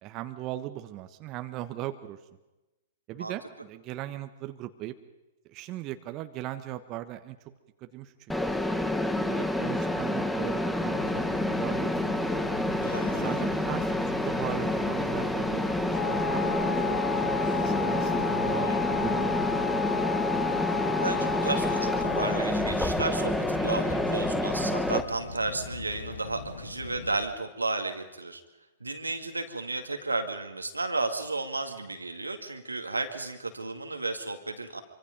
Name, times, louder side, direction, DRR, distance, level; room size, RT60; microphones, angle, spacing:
voice 1, 0.0-2.2 3.1-4.9 5.5-7.5 7.8-8.3 9.0-12.2 13.0-17.0 17.5-19.7, right 14 dB, 35° right, 9 dB, 1.3 m, -38 dB
Mechanisms, 8.3-25.0, left 1 dB, 5° left, 1.6 m, -28 dB
sound 1, 11.0-27.3, left 4 dB, 80° left, 2.2 m, -41 dB
voice 2, 12.9-13.2 20.9-28.4 28.8-34.8, right 3 dB, 90° right, 6 dB, 2.2 m, -33 dB
Wind instrument woodwind instrument, 15.9-22.5, left 5 dB, 30° left, 4.1 m, -31 dB
26.0 x 25.0 x 5.3 m, 1.0 s
figure-of-eight pair, 105°, 0 cm